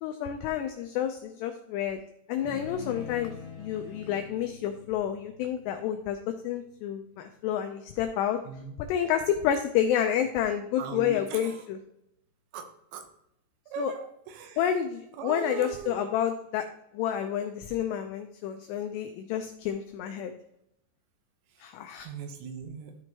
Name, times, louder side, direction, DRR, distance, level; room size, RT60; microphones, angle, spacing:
voice 1, 0.0-2.0 2.3-8.4 8.8-11.8 13.8-13.9 14.6-16.7 16.9-20.3 21.6-22.1, left 9 dB, 90° left, 6 dB, 2.4 m, -29 dB
sound 1, 2.4-7.1, left 5 dB, 40° left, 1.9 m, -45 dB
voice 2, 10.8-11.6 12.5-13.0 13.7-14.6 15.2-16.1 22.0-23.0, right 6 dB, 85° right, 6 dB, 3.5 m, -39 dB
13.5 x 4.5 x 2.8 m, 0.79 s
omnidirectional pair, 5.5 m